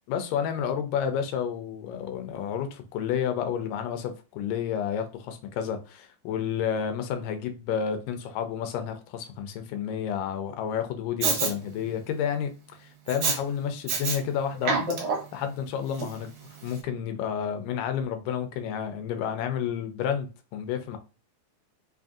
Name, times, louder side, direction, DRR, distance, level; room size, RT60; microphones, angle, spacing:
voice 1, 0.1-15.0 15.3-16.3 16.6-21.0, left 8 dB, 90° left, 2.2 m, -30 dB
Respiratory sounds, 11.2-11.5 13.1-13.4 13.9-14.2 14.5-15.4 16.0-16.1, right 5 dB, 85° right, 1.1 m, -26 dB
5.1 x 2.6 x 2.4 m
omnidirectional pair, 3.6 m